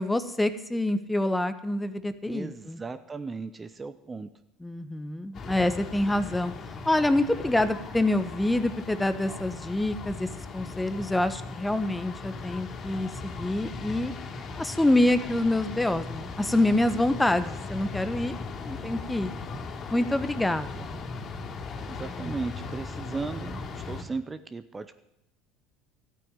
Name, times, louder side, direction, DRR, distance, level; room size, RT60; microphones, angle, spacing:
voice 1, 0.0-2.8 4.6-6.5 6.8-10.3 10.5-14.1 14.5-18.3 18.6-19.3 19.9-20.9, left 1 dB, 10° left, 12 dB, 1.1 m, -26 dB
voice 2, 2.3-4.3 21.8-24.9, right 4 dB, 20° right, 11 dB, 1.0 m, -36 dB
sound 1, 5.3-24.0, left 4 dB, 50° left, 3.2 m, -38 dB
13.0 x 9.0 x 9.0 m, 0.84 s
hypercardioid pair, 80°, 0 cm